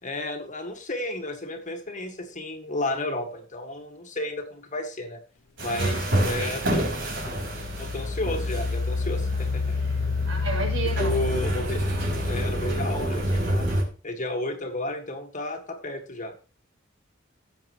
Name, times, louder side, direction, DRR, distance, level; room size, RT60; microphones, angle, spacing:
voice 1, 0.0-5.2 5.6-6.9 7.8-9.8 11.0-11.8 12.2-13.7 14.0-16.3, left 1 dB, 40° left, 1.8 m, -32 dB
sound 1, 5.6-13.8, right 1 dB, 65° right, 4.7 m, -29 dB
voice 2, 5.7-6.1 9.7-10.0 10.3-11.2, right 3 dB, 80° right, 5.9 m, -33 dB
Engine, 7.0-12.9, left 4 dB, 65° left, 0.5 m, -29 dB
16.5 x 7.8 x 3.1 m
head